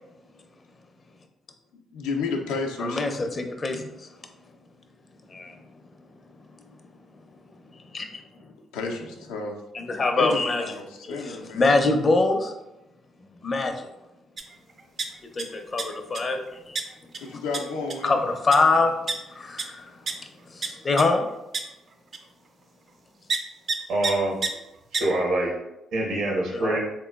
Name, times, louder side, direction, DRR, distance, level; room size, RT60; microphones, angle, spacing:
voice 1, 1.9-3.0 8.7-9.5 10.2-11.8 17.2-18.1, left 3 dB, 90° left, 1 dB, 0.5 m, -31 dB
voice 2, 2.8-4.1 5.3-5.6 7.9-8.2 9.7-10.6 11.1-12.5 13.4-13.9 15.3-16.4 16.7-16.8 18.0-18.9 19.3-20.0 20.5-21.3 26.5-26.8, left 3 dB, 40° left, 5 dB, 0.5 m, -24 dB
sound 1, 14.4-14.5 14.8-15.4 15.8-16.2 16.8-16.9 17.1-17.2 17.5-17.6 17.9-18.1 18.5-18.6 19.1-19.2 19.6-19.7 20.1-20.2 20.6-20.7 21.0-21.1 21.5-21.6 22.1-22.2 23.3-23.4 23.7-23.8 24.0-24.1 24.4-24.5 24.9-25.0, right 4 dB, 50° right, 0.4 m, -27 dB
voice 3, 23.9-24.4 24.9-25.6 25.9-26.8, right 2 dB, 80° right, -1 dB, 1.0 m, -25 dB
3.6 x 2.9 x 2.3 m, 0.91 s
supercardioid pair, 60°, 0 cm